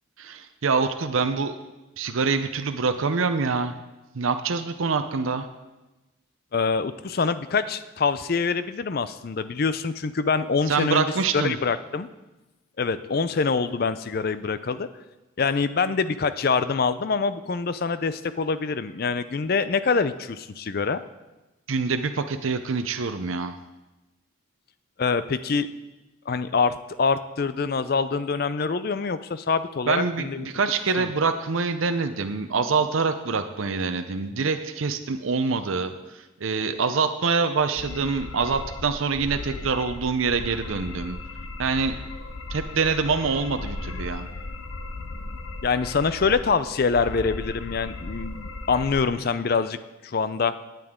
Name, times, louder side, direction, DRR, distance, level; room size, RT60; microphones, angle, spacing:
voice 1, 0.2-1.5 2.0-3.7 4.1-5.5 10.7-11.6 21.7-23.6 29.9-41.2 41.6-42.0 42.5-44.3, right 4 dB, 75° right, 8 dB, 0.6 m, -25 dB
voice 2, 6.5-11.0 11.3-12.1 12.8-14.9 15.4-21.0 25.0-25.7 26.3-30.4 31.0-31.1 45.6-50.5, left 5 dB, 45° left, 13 dB, 0.5 m, -25 dB
sound 1, 37.7-49.1, left 2 dB, 75° left, 0.8 m, -36 dB
16.5 x 9.2 x 3.7 m, 1.1 s
head